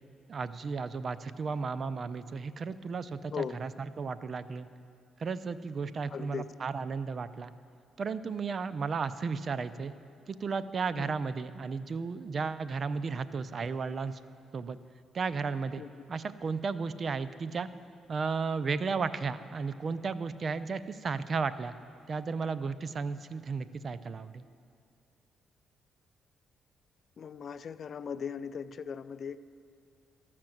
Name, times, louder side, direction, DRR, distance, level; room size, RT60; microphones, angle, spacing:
voice 1, 0.3-3.7 4.0-4.7 5.2-7.5 8.0-9.9 10.3-14.2 14.5-14.8 15.1-15.8 16.1-17.7 18.1-21.7 22.1-24.5, right 5 dB, 45° right, 14 dB, 0.4 m, -34 dB
voice 2, 6.1-6.5 11.0-11.1 15.8-15.9 27.2-29.4, left 7 dB, 55° left, 14 dB, 0.3 m, -38 dB
13.0 x 5.9 x 7.7 m, 2.4 s
cardioid pair, 90°, 0 cm